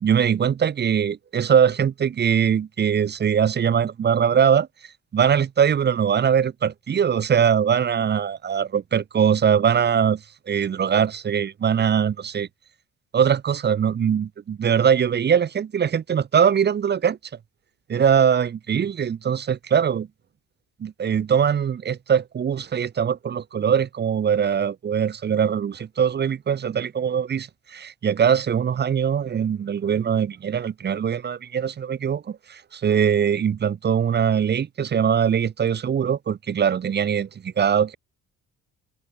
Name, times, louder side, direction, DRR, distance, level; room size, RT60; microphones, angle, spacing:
voice 1, 0.0-4.7 5.1-12.5 13.1-17.2 17.9-20.1 20.8-38.0, right 8 dB, 35° right, 0.6 m, -21 dB
cardioid pair, 90°, 30 cm